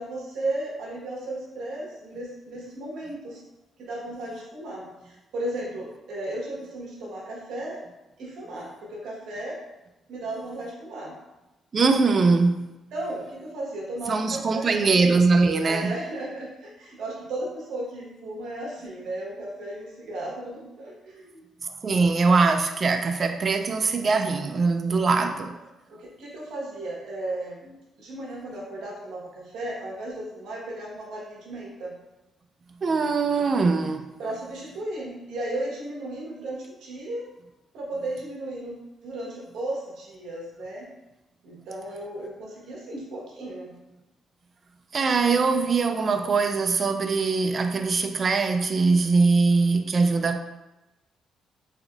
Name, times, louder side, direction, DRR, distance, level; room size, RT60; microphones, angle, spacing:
voice 1, 0.0-3.4 3.8-7.8 8.2-9.5 10.1-11.1 12.9-14.8 15.6-21.4 24.9-25.1 25.9-31.9 33.3-33.5 34.2-37.2 37.7-38.7 39.0-40.9 41.4-43.7, right 1 dB, 75° right, -3 dB, 1.0 m, -35 dB
voice 2, 11.7-12.6 14.1-15.9 21.8-25.6 32.8-34.1 44.9-50.4, right 4 dB, 45° right, 7 dB, 0.3 m, -22 dB
3.6 x 3.4 x 2.3 m, 0.99 s
cardioid pair, 90°, 0 cm